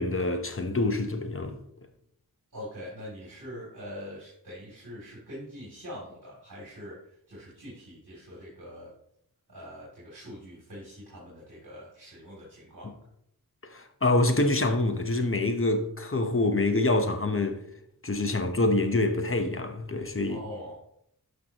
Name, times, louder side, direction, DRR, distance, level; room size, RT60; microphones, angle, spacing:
voice 1, 0.0-1.6 13.7-17.6 18.0-20.4, left 2 dB, 35° left, 1.0 m, -26 dB
voice 2, 2.5-8.9 9.5-12.9 20.2-20.8, equal, 55° right, 3.1 m, -43 dB
12.0 x 5.8 x 3.0 m
wide cardioid pair, 60°, 37 cm